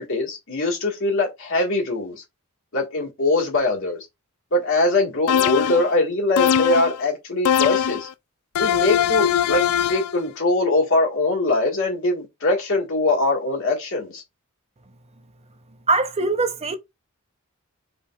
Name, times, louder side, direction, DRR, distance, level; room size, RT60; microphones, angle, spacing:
voice 1, 0.0-2.2 2.7-4.0 4.5-8.1 8.6-9.6 9.9-14.2, left 2 dB, 65° left, 1.7 m, -22 dB
sound 1, 5.3-5.9 6.4-7.0 7.5-8.1 8.6-10.1, left 9 dB, 80° left, 0.4 m, -21 dB
voice 2, 15.9-16.8, right 3 dB, 30° right, 0.6 m, -21 dB
5.1 x 3.4 x 2.4 m
head